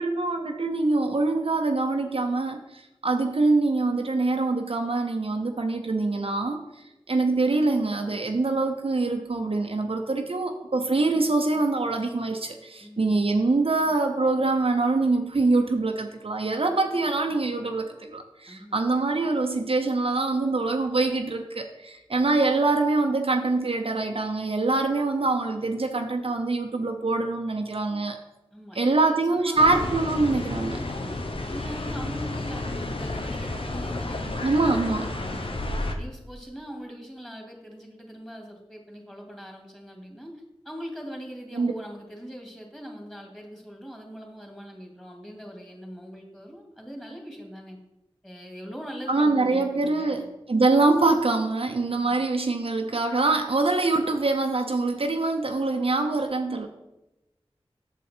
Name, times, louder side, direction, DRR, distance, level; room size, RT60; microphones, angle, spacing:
voice 1, 0.0-6.6 7.1-28.2 28.7-30.8 34.4-35.1 41.5-41.7 49.1-56.7, right 3 dB, 65° right, 4 dB, 0.7 m, -24 dB
voice 2, 12.8-13.2 18.5-18.8 28.5-29.9 30.7-35.6 36.0-47.8 48.2-50.2 51.9-52.2, equal, 5° left, 1 dB, 2.3 m, -41 dB
sound 1, 29.6-35.9, left 2 dB, 60° left, 0.9 m, -31 dB
8.3 x 6.9 x 4.4 m, 0.96 s
wide cardioid pair, 55°, 11 cm